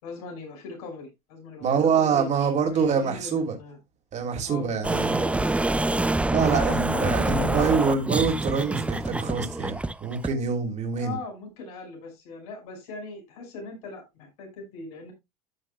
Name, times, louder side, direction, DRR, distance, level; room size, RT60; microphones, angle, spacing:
voice 1, 0.0-3.8 4.4-5.5 5.8-6.1 6.5-7.8 11.0-15.1, left 3 dB, 75° left, 5.5 m, -39 dB
voice 2, 1.6-3.5 4.1-5.2 6.3-11.2, right 6 dB, 35° right, 3.3 m, -25 dB
sound 1, 4.8-10.3, right 2 dB, 5° right, 0.6 m, -26 dB
14.5 x 6.3 x 2.3 m
hypercardioid pair, 90°, 19 cm